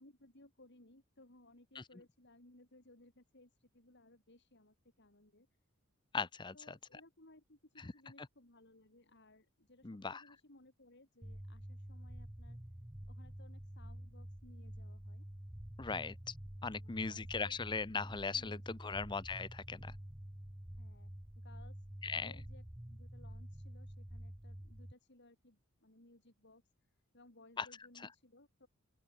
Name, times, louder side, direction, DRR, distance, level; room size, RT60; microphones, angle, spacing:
voice 1, 0.0-5.5 6.5-12.6 13.1-15.2 16.7-17.6 18.3-19.0 20.8-21.8 22.2-26.6 27.1-28.7, left 2 dB, 55° left, 4.5 m, -63 dB
voice 2, 6.1-6.8 7.8-7.9 8.2-8.3 9.8-10.2 15.8-16.3 16.6-20.0 22.0-22.3 27.6-27.7, left 4 dB, 20° left, 0.6 m, -39 dB
sound 1, 11.2-24.9, equal, 10° right, 1.0 m, -49 dB
open air
head